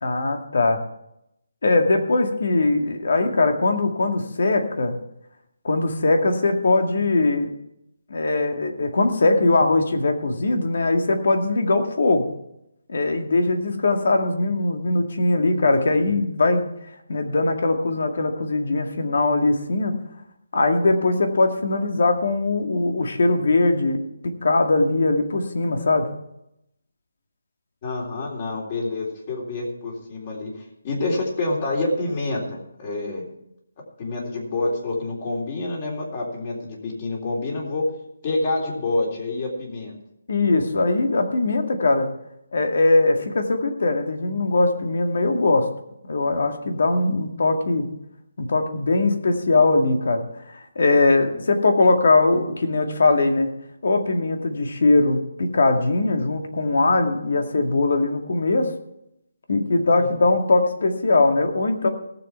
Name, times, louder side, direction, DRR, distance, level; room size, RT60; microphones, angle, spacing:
voice 1, 0.0-0.8 1.6-5.0 5.6-7.5 8.1-12.3 12.9-16.7 17.1-20.0 20.5-26.1 40.3-42.1 42.5-45.7 46.1-47.9 48.4-53.5 53.8-58.7 59.5-61.9, left 2 dB, 60° left, 5 dB, 2.2 m, -21 dB
voice 2, 27.8-30.5 30.8-33.3 34.0-37.8 38.2-39.9 60.0-60.1, left 2 dB, 30° left, -1 dB, 3.6 m, -27 dB
18.0 x 7.7 x 4.6 m, 0.80 s
hypercardioid pair, 170°, 0 cm